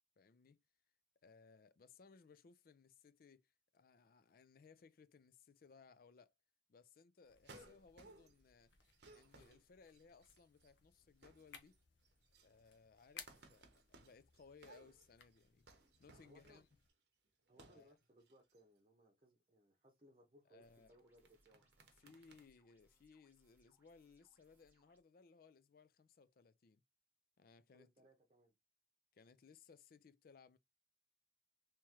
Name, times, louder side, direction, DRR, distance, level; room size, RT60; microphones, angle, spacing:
voice 1, 0.2-0.6 1.2-6.3 6.7-8.7 9.1-11.8 12.4-16.7 17.5-18.0 20.5-21.0 22.0-26.8 27.4-27.9 29.1-30.6, left 5 dB, 50° left, 0.4 m, -64 dB
sound 1, 7.2-16.9, left 7 dB, 70° left, 0.8 m, -63 dB
sound 2, 7.4-8.5 8.8-10.7 11.0-11.8 12.0-16.9 17.5-17.9 18.2-18.6 21.0-22.4, right 2 dB, 60° right, 0.8 m, -63 dB
voice 2, 16.2-16.6 17.5-21.7 27.7-28.5, equal, 30° right, 0.8 m, -68 dB
sound 3, 20.6-25.0, right 1 dB, 10° right, 0.9 m, -78 dB
3.5 x 3.0 x 3.0 m
head